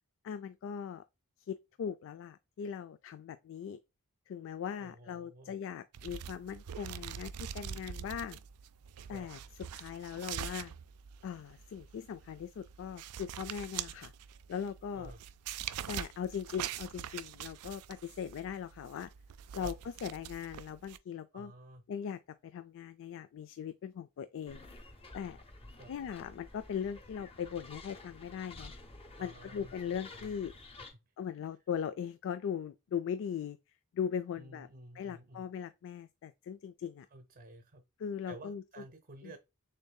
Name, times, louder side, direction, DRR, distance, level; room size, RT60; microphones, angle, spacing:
voice 1, 0.2-1.0 1.5-3.8 4.3-8.4 9.1-9.4 9.7-10.7 11.2-14.1 14.5-15.1 15.9-19.1 19.5-21.5 21.9-24.7 25.1-25.4 25.9-28.7 29.2-30.5 31.2-33.6 33.9-34.7 34.9-37.1 38.0-38.8 39.2-39.3, left 8 dB, 60° left, 0.3 m, -39 dB
voice 2, 4.8-5.6 9.1-9.3 14.9-15.2 19.6-19.7 21.3-21.8 25.8-25.9 29.2-29.7 30.1-30.3 30.8-31.0 34.4-35.5 37.1-37.8 38.3-39.4, right 2 dB, 45° right, 0.7 m, -52 dB
sound 1, 5.9-21.0, right 9 dB, 80° right, 0.4 m, -44 dB
sound 2, 24.5-30.9, left 2 dB, 25° left, 0.8 m, -51 dB
6.6 x 2.7 x 2.2 m
head